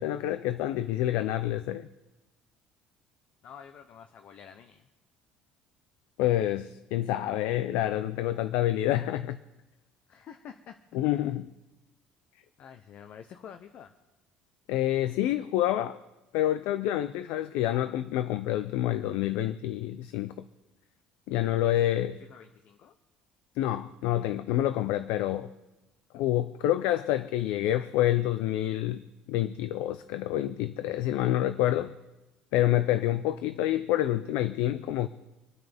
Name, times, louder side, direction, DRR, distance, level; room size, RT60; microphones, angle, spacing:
voice 1, 0.0-1.9 6.2-9.4 10.9-11.5 14.7-16.0 16.3-20.4 21.3-22.2 23.6-25.5 26.1-29.0 29.3-31.9 32.5-35.1, left 13 dB, 80° left, 11 dB, 0.6 m, -27 dB
voice 2, 3.4-4.8 10.1-10.8 11.1-11.2 12.6-13.9 21.6-21.9 22.2-22.9, left 8 dB, 50° left, 8 dB, 0.8 m, -48 dB
27.0 x 9.4 x 3.5 m, 1.0 s
cardioid pair, 130°, 3 cm